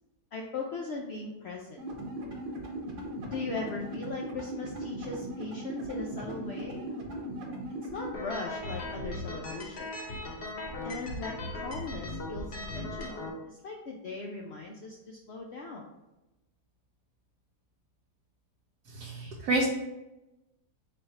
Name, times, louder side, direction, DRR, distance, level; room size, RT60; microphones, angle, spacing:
voice 1, 0.3-1.8 3.3-6.9 7.9-9.9 10.8-15.8, left 3 dB, 85° left, 0 dB, 0.5 m, -39 dB
sound 1, 1.8-8.1, right 1 dB, 55° right, 1.1 m, -38 dB
sound 2, 8.1-13.3, left 1 dB, 50° left, 0.7 m, -38 dB
voice 2, 18.9-19.7, right 2 dB, 85° right, -3 dB, 1.2 m, -29 dB
4.2 x 2.5 x 4.1 m, 0.98 s
omnidirectional pair, 1.7 m